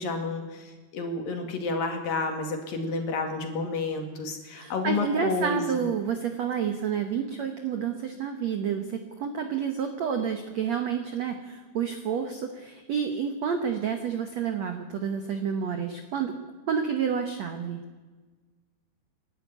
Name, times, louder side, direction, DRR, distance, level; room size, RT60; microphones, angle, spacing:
voice 1, 0.0-5.9, left 3 dB, 55° left, 4 dB, 3.7 m, -30 dB
voice 2, 4.5-16.3 16.7-17.8, right 7 dB, 80° right, 6 dB, 1.5 m, -29 dB
27.5 x 12.0 x 9.5 m, 1.3 s
omnidirectional pair, 5.2 m